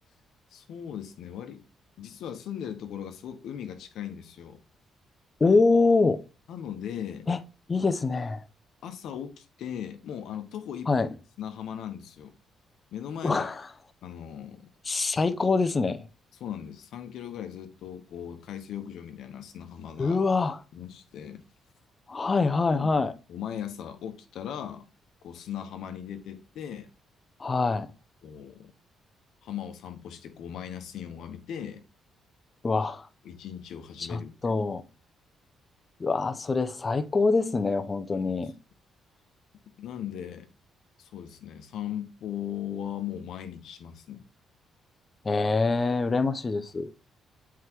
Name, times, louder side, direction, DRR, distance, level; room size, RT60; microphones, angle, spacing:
voice 1, 0.5-1.6 2.0-4.6 6.5-7.3 8.8-10.9 11.4-12.3 12.9-13.5 14.0-14.7 16.4-20.2 20.7-21.4 22.7-24.9 25.2-26.9 28.2-28.7 29.4-31.8 33.2-34.6 38.2-38.3 39.8-40.5 41.0-44.3, left 9 dB, 80° left, 1.0 m, -38 dB
voice 2, 5.4-6.2 7.3-7.4 7.7-8.4 10.9-11.1 13.2-13.6 14.9-16.0 20.0-20.6 22.1-23.1 27.4-27.9 32.6-33.1 34.1-34.8 36.0-38.5 45.2-46.9, left 3 dB, 30° left, 0.7 m, -24 dB
7.8 x 4.7 x 3.0 m
cardioid pair, 90°, 0 cm